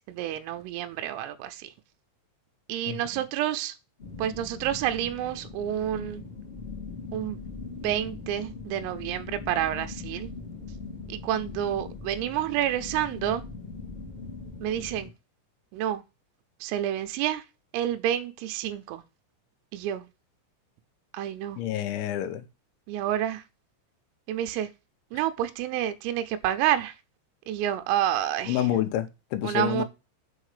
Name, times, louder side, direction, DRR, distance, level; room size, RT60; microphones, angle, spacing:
voice 1, 0.0-1.7 2.7-3.7 4.2-6.2 7.1-7.4 7.8-10.3 11.1-13.4 14.6-15.1 15.7-16.0 16.6-17.4 17.7-19.0 19.7-20.0 21.1-21.6 22.9-23.4 24.3-24.7 25.1-26.9 27.5-28.6 29.4-29.8, right 11 dB, 85° right, 3.4 m, -29 dB
voice 2, 2.9-3.2 21.6-22.5 28.5-29.8, left 11 dB, 80° left, 2.9 m, -28 dB
sound 1, 4.0-15.1, left 4 dB, 55° left, 0.6 m, -40 dB
7.2 x 4.1 x 4.9 m
omnidirectional pair, 5.9 m